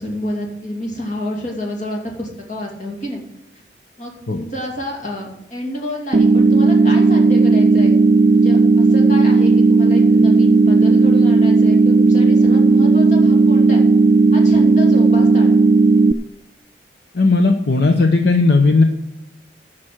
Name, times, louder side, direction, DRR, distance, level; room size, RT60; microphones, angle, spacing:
voice 1, 0.0-3.2 4.0-7.9 8.3-13.8 14.3-15.6, equal, 40° left, 0 dB, 2.6 m, -28 dB
sound 1, 6.1-16.1, right 3 dB, 45° right, 0.4 m, -13 dB
voice 2, 17.1-18.8, left 3 dB, 65° left, 5 dB, 0.8 m, -15 dB
11.0 x 6.1 x 7.6 m, 0.85 s
head